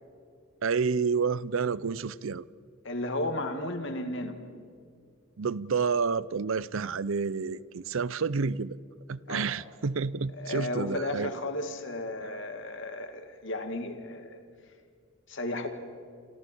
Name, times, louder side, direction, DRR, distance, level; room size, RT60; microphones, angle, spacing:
voice 1, 0.6-2.5 5.4-8.8 9.1-11.3, right 5 dB, 75° right, 0.6 m, -29 dB
voice 2, 2.8-4.4 9.3-9.5 10.4-14.4 15.3-15.7, left 1 dB, 60° left, 2.3 m, -34 dB
28.0 x 27.0 x 4.6 m
head